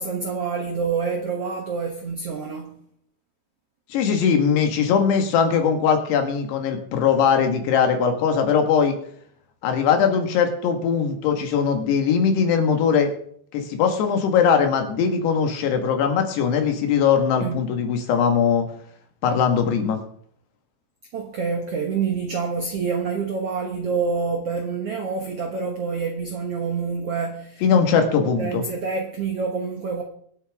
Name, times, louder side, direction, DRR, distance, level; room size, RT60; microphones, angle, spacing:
voice 1, 0.0-2.7 17.4-17.7 21.1-27.6 28.2-30.0, right 5 dB, 90° right, 1.3 m, -27 dB
voice 2, 3.9-8.9 9.6-13.1 13.5-18.7 19.2-20.0 27.6-28.6, left 7 dB, 80° left, 3.7 m, -20 dB
24.5 x 8.4 x 3.6 m
omnidirectional pair, 4.7 m